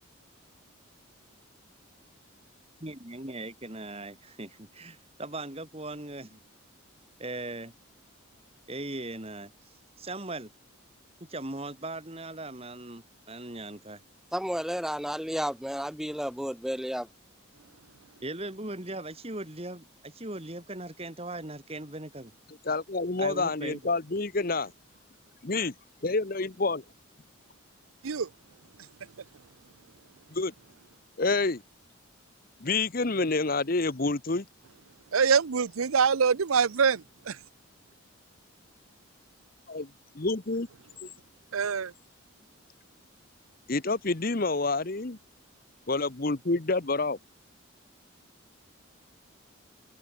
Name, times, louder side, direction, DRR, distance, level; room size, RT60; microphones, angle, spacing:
voice 1, 2.8-6.4 7.2-7.7 8.7-9.5 10.0-10.5 11.3-14.0 18.2-22.3 23.2-23.8, right 2 dB, 30° right, 2.7 m, -39 dB
voice 2, 14.3-17.1, equal, ahead, 0.8 m, -32 dB
voice 3, 22.6-24.7 25.4-25.7 26.0-26.8 30.3-30.5 31.2-31.6 32.6-34.5 39.7-40.7 41.0-41.1 43.7-45.2 45.9-47.2, left 3 dB, 45° left, 1.0 m, -28 dB
voice 4, 35.1-37.4 41.5-41.9, right 6 dB, 85° right, 0.7 m, -24 dB
open air
head